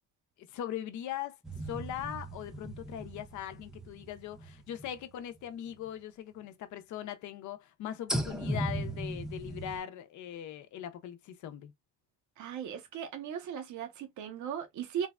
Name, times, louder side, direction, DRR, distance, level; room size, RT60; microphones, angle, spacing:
voice 1, 0.4-1.4 1.6-11.7, left 10 dB, 75° left, 0.6 m, -40 dB
sound 1, 1.4-5.5 5.9-6.0 8.1-9.8, right 1 dB, ahead, 0.5 m, -38 dB
voice 2, 12.4-15.1, right 8 dB, 75° right, 0.8 m, -37 dB
3.3 x 2.1 x 2.2 m
cardioid pair, 90°, 30 cm